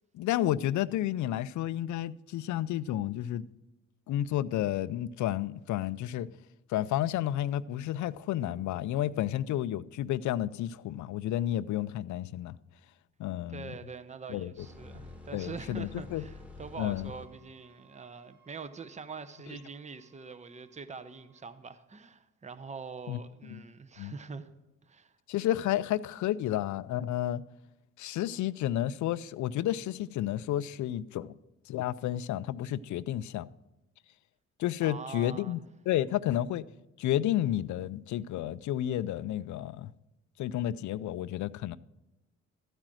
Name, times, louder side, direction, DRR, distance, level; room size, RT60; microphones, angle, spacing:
voice 1, 0.1-3.5 4.1-6.3 6.7-12.6 13.2-13.7 14.3-14.7 15.3-16.2 16.8-17.1 23.1-23.2 23.5-23.6 24.0-24.1 25.3-27.4 28.0-31.3 31.7-33.5 34.6-35.6 35.9-36.6 37.0-39.9 40.4-41.8, left 12 dB, 75° left, 0.5 m, -31 dB
voice 2, 13.5-24.5 24.8-25.1 34.8-35.6, right 5 dB, 25° right, 0.8 m, -44 dB
sound 1, 14.6-20.8 21.1-21.3, left 2 dB, 5° right, 1.8 m, -51 dB
13.5 x 4.9 x 7.6 m
cardioid pair, 90°, 30 cm